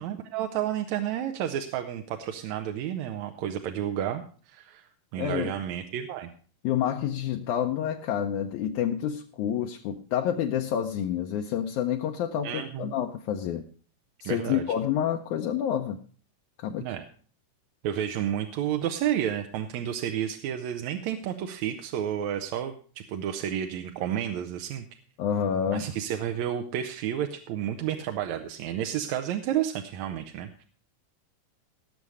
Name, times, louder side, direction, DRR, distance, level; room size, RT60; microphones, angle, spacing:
voice 1, 0.0-4.9 5.1-6.3 12.4-12.9 14.2-14.6 16.8-17.1 17.8-24.9 25.7-30.6, right 10 dB, 70° right, 5 dB, 1.9 m, -31 dB
voice 2, 5.2-5.5 6.6-13.7 14.2-16.0 16.6-16.9 25.2-25.9, left 9 dB, 75° left, 3 dB, 2.0 m, -28 dB
18.0 x 6.9 x 4.8 m, 0.41 s
omnidirectional pair, 3.7 m